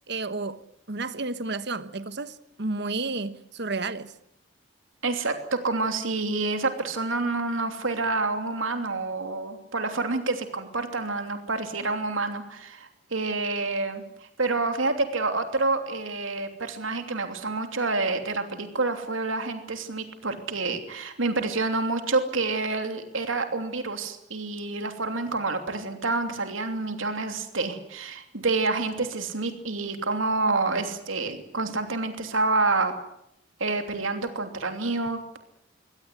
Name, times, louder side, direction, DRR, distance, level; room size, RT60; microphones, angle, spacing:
voice 1, 0.1-4.1, right 3 dB, 55° right, 1.3 m, -32 dB
voice 2, 5.0-14.0 14.4-32.9 33.6-35.4, right 3 dB, 75° right, 3.0 m, -28 dB
24.5 x 17.5 x 9.7 m
head